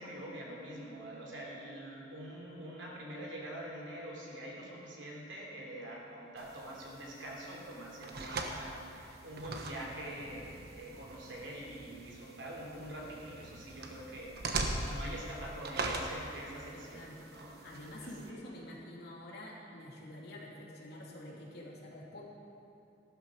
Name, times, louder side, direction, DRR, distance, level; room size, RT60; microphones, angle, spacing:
voice 1, 0.0-17.6 18.0-18.4, right 1 dB, 80° right, -3 dB, 3.1 m, -45 dB
sound 1, 6.4-18.3, right 2 dB, 60° right, 1.2 m, -42 dB
voice 2, 16.7-17.2 17.6-22.2, left 1 dB, 60° left, -4 dB, 2.8 m, -47 dB
14.0 x 12.5 x 5.0 m, 2.8 s
head